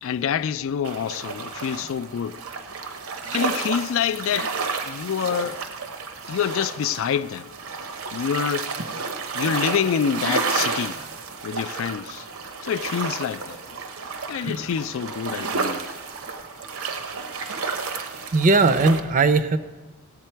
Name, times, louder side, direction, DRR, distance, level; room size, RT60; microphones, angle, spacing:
voice 1, 0.0-2.4 3.3-4.6 4.8-5.6 6.3-7.5 8.1-8.7 9.3-11.0 11.4-12.3 12.6-13.6 14.3-15.9, left 8 dB, 65° left, 0.3 m, -26 dB
sound 1, 0.8-19.0, right 4 dB, 85° right, 0.8 m, -31 dB
voice 2, 18.3-19.6, right 3 dB, 40° right, 0.5 m, -18 dB
16.5 x 7.4 x 4.5 m
head